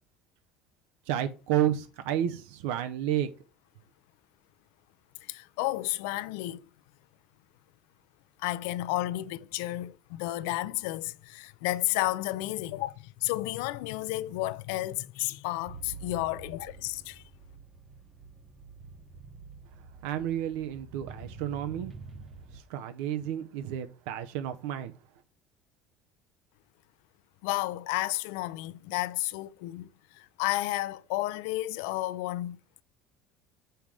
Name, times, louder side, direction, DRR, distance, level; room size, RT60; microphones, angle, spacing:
voice 1, 1.1-3.3 20.0-21.9 22.5-24.9, right 11 dB, 85° right, 0.7 m, -31 dB
voice 2, 5.2-6.7 8.4-17.2 27.4-32.6, left 17 dB, 85° left, 0.5 m, -32 dB
sound 1, 15.7-22.6, right 4 dB, 20° right, 0.9 m, -47 dB
7.3 x 5.7 x 4.9 m
cardioid pair, 170°, 0 cm